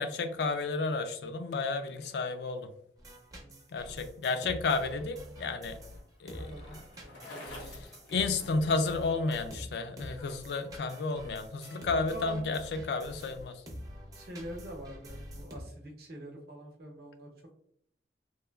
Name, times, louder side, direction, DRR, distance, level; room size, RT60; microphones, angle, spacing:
voice 1, 0.0-2.7 3.7-5.8 6.2-6.8 8.1-13.5, left 3 dB, 70° left, 8 dB, 0.3 m, -32 dB
sound 1, 3.0-15.6, equal, 20° right, 0.5 m, -46 dB
voice 2, 3.4-3.8 6.4-7.9 8.4-8.7 12.1-13.0 14.1-17.5, right 1 dB, 60° right, 1 dB, 0.7 m, -46 dB
Bicycle, 4.7-9.1, left 2 dB, 85° left, 0.9 m, -51 dB
3.0 x 2.2 x 2.2 m, 0.69 s
head